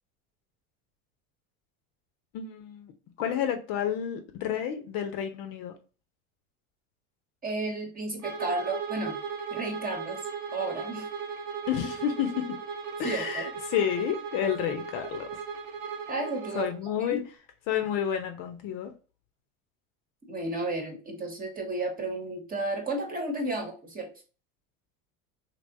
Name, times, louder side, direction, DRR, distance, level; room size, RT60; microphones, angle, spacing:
voice 1, 2.3-2.9 3.2-5.7 11.7-12.6 13.0-15.3 16.5-17.2 17.7-18.9, left 9 dB, 50° left, 0.7 m, -30 dB
voice 2, 7.4-9.2 9.5-10.2 10.5-11.1 13.0-13.5 16.1-16.7 17.0-17.2 20.2-24.1, right 2 dB, 20° right, 1.1 m, -32 dB
Bowed string instrument, 8.2-16.7, right 6 dB, 75° right, 0.8 m, -37 dB
3.3 x 2.8 x 2.6 m
hypercardioid pair, 80°, 42 cm